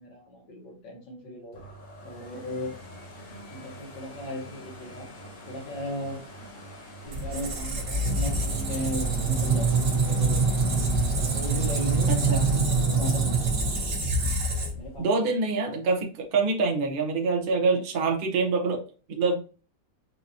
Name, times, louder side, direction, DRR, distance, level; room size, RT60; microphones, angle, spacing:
voice 1, 0.0-1.6 2.0-2.7 3.5-5.1 5.5-6.2 7.0-10.4 11.1-13.4 14.7-15.1, equal, 80° left, -1 dB, 2.1 m, -36 dB
sound 1, 1.5-15.2 15.7-15.8, equal, 50° left, 1.2 m, -46 dB
Squeak, 7.1-15.0, right 3 dB, 50° right, 1.5 m, -25 dB
voice 2, 12.1-12.5 15.0-18.8 19.1-19.4, right 4 dB, 65° right, 1 dB, 0.5 m, -25 dB
5.6 x 2.6 x 2.8 m, 0.36 s
omnidirectional pair, 1.9 m